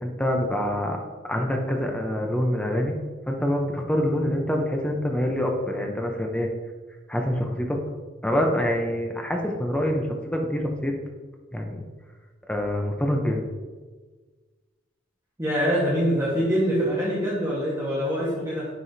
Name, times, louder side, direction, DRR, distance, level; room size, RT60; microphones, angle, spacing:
voice 1, 0.0-1.0 1.2-3.0 3.3-6.5 7.1-7.8 8.2-10.9 11.5-11.8 12.5-13.4, equal, 5° left, 2 dB, 0.7 m, -26 dB
voice 2, 15.4-18.7, equal, 15° right, -8 dB, 1.3 m, -24 dB
9.7 x 4.8 x 2.7 m, 1.4 s
head